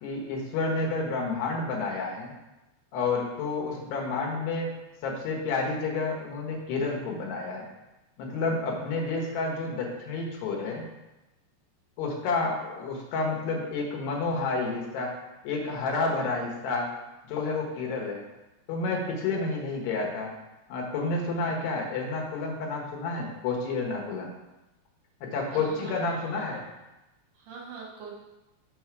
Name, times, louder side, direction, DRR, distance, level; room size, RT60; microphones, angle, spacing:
voice 1, 0.0-2.3 2.9-4.7 5.0-7.7 8.2-10.8 12.0-15.2 15.4-16.9 17.3-18.2 18.7-20.3 20.7-24.3 25.2-26.6, left 3 dB, 75° left, -1 dB, 3.3 m, -30 dB
voice 2, 25.5-26.7 27.3-28.1, right 4 dB, 60° right, -3 dB, 2.9 m, -43 dB
6.7 x 5.5 x 4.7 m, 1.0 s
omnidirectional pair, 5.0 m